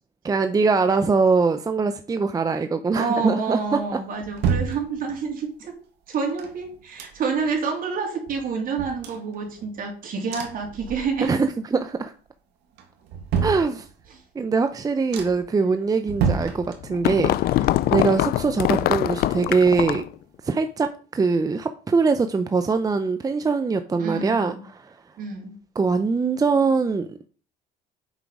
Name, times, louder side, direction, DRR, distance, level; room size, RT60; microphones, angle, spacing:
voice 1, 0.2-3.8 11.2-12.1 13.4-13.9 14.3-20.0 20.4-25.0 25.7-27.2, right 4 dB, 20° right, 0.6 m, -22 dB
voice 2, 2.9-5.8 6.1-11.4 14.1-14.2 18.7-19.0 24.0-24.6 25.2-25.5, right 5 dB, 55° right, 3.0 m, -28 dB
sound 1, 3.7-5.4 6.1-7.6 7.9-8.0 8.3-9.9 10.3-11.5 11.8-12.3 12.8-14.2 14.7-14.8 15.1-15.6 16.0-17.2 17.5-19.3 19.6-19.7, right 6 dB, 85° right, 1.9 m, -31 dB
sound 2, 16.6-20.1, left 14 dB, 70° left, 0.5 m, -23 dB
8.2 x 6.1 x 4.9 m
cardioid pair, 110°, 17 cm